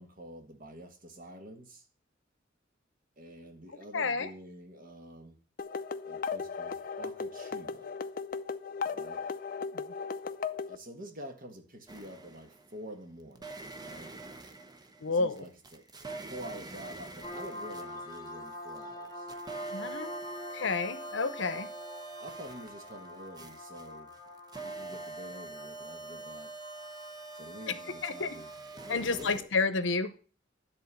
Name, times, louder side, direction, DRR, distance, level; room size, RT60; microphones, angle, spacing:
voice 1, 0.0-1.9 3.2-5.4 6.0-7.9 8.8-9.2 10.7-14.1 15.1-19.3 21.5-21.7 22.2-24.1 24.6-26.5 27.3-29.5, equal, 45° right, 1.5 m, -47 dB
voice 2, 3.9-4.3 9.7-9.8 15.0-15.4 19.7-20.1 20.5-21.7 27.7-27.8 28.0-28.4 28.9-30.1, left 4 dB, 65° left, 0.8 m, -30 dB
sound 1, 5.6-10.8, left 5 dB, 45° left, 0.5 m, -36 dB
sound 2, 11.9-12.8 13.3-18.8 19.0-29.4, right 3 dB, 20° right, 0.7 m, -45 dB
sound 3, 17.2-28.6, left 1 dB, 20° left, 0.9 m, -45 dB
10.5 x 3.8 x 6.9 m
head